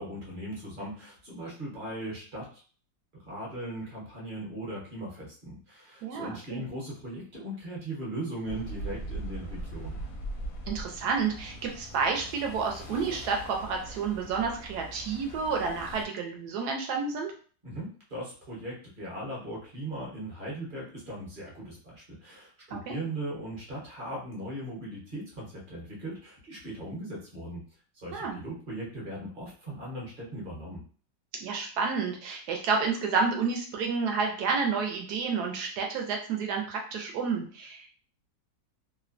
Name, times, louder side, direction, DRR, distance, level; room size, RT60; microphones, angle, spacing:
voice 1, 0.0-2.6 3.1-10.0 17.6-27.6 27.9-30.8, right 1 dB, 40° right, -4 dB, 0.8 m, -39 dB
voice 2, 6.0-6.6 10.7-17.3 22.7-22.9 28.1-28.4 31.4-37.9, right 5 dB, 75° right, 2 dB, 1.0 m, -30 dB
sound 1, 8.4-16.1, right 1 dB, 70° left, 0.8 m, -40 dB
3.1 x 2.1 x 2.4 m, 0.42 s
omnidirectional pair, 1.9 m